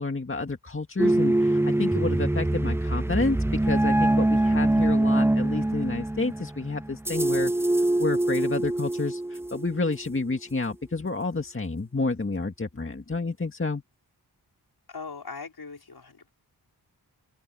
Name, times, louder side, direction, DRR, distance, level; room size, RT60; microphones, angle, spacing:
voice 1, 0.0-7.5 7.8-13.8, left 3 dB, 30° left, 2.0 m, -30 dB
sound 1, 1.0-10.1, right 1 dB, 5° right, 0.6 m, -24 dB
voice 2, 14.9-16.3, left 4 dB, 65° left, 5.3 m, -40 dB
open air
wide cardioid pair, 80°, 40 cm